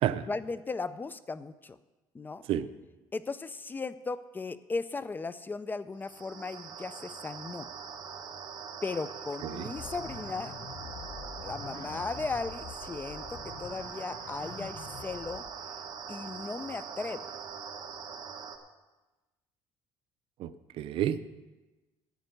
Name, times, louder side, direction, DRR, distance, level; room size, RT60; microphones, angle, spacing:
voice 1, 0.3-1.8 2.1-2.4 3.1-7.7 8.8-10.5 11.4-15.4 16.1-17.3, left 4 dB, 20° left, 15 dB, 0.4 m, -36 dB
sound 1, 6.0-18.6, right 6 dB, 45° right, 1.4 m, -42 dB
sound 2, 9.7-15.5, left 7 dB, 45° left, 0.8 m, -46 dB
voice 2, 20.4-21.2, right 11 dB, 65° right, 13 dB, 0.6 m, -30 dB
9.8 x 9.1 x 6.5 m, 1.1 s
cardioid pair, 115°, 10 cm